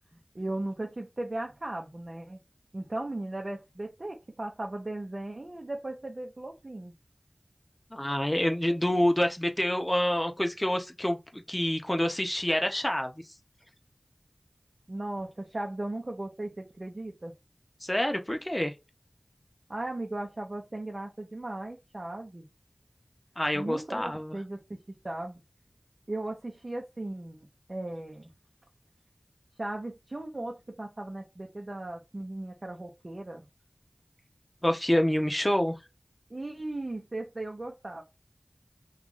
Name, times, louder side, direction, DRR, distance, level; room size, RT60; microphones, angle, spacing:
voice 1, 0.3-2.4 2.7-6.9 14.9-17.3 19.7-22.4 23.5-24.8 25.0-25.4 26.1-28.3 29.6-33.4 36.3-38.0, right 2 dB, 50° right, 0.7 m, -37 dB
voice 2, 7.9-13.1 17.8-18.7 23.4-24.4 34.6-35.8, left 1 dB, 20° left, 0.7 m, -27 dB
3.0 x 2.4 x 3.6 m
wide cardioid pair, 50°, 0 cm